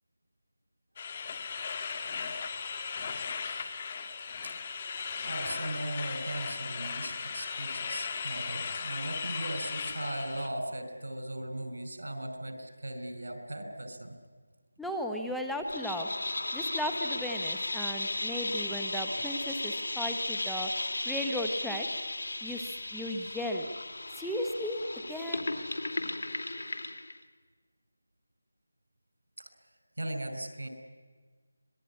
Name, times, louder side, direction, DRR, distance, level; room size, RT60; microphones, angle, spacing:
sound 1, 1.0-10.5, left 5 dB, 25° left, 2.0 m, -37 dB
voice 1, 4.4-14.2 30.0-30.7, right 1 dB, 85° right, 7 dB, 5.4 m, -38 dB
voice 2, 14.8-16.1 16.5-20.7 21.0-21.9 22.4-23.7 24.1-25.5, equal, ahead, 2 dB, 1.1 m, -35 dB
sound 2, 15.7-27.2, left 2 dB, 75° left, 2.4 m, -35 dB
25.0 x 20.5 x 9.8 m, 1.5 s
figure-of-eight pair, 170°, 0 cm